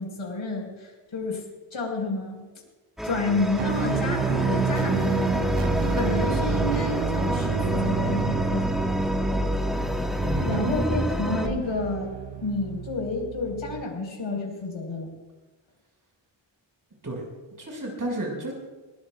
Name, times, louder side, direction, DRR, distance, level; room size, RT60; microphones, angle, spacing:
voice 1, 0.0-2.4 3.0-5.4 5.8-8.7 10.4-12.1 12.4-15.1, left 3 dB, 80° left, 0 dB, 5.3 m, -30 dB
sound 1, 3.0-11.5, equal, ahead, 1.5 m, -27 dB
sound 2, 3.6-13.8, right 9 dB, 70° right, 0.7 m, -31 dB
voice 2, 10.2-11.0 17.0-17.2 17.6-18.5, right 2 dB, 45° right, -1 dB, 5.9 m, -31 dB
22.5 x 20.5 x 2.5 m, 1.2 s
wide cardioid pair, 150°, 46 cm